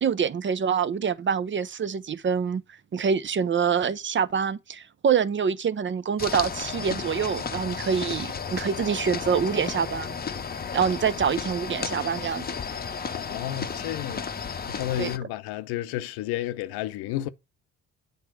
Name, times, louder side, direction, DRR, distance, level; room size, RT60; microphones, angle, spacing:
voice 1, 0.0-2.6 2.9-10.1 10.7-12.6 15.0-15.1, right 7 dB, 30° right, 0.5 m, -26 dB
sound 1, 6.2-15.2, left 6 dB, 25° left, 0.7 m, -33 dB
voice 2, 13.1-14.4 14.7-17.3, left 14 dB, 85° left, 0.7 m, -32 dB
7.9 x 3.6 x 6.0 m
supercardioid pair, 65°, 37 cm